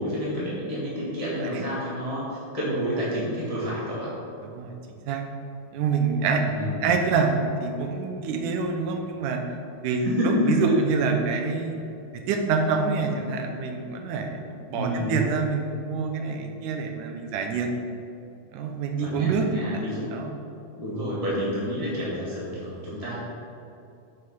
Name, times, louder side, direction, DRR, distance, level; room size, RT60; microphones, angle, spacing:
voice 1, 0.0-4.1 6.4-6.9 10.0-10.7 14.7-15.2 19.0-20.0 20.8-23.2, equal, 15° left, -8 dB, 1.1 m, -29 dB
voice 2, 4.4-4.8 5.1-5.2 5.7-6.4 6.8-9.4 9.8-11.8 12.3-17.7 18.5-19.5 19.7-20.3, right 4 dB, 80° right, 3 dB, 2.3 m, -26 dB
6.8 x 6.6 x 5.5 m, 2.7 s
omnidirectional pair, 3.7 m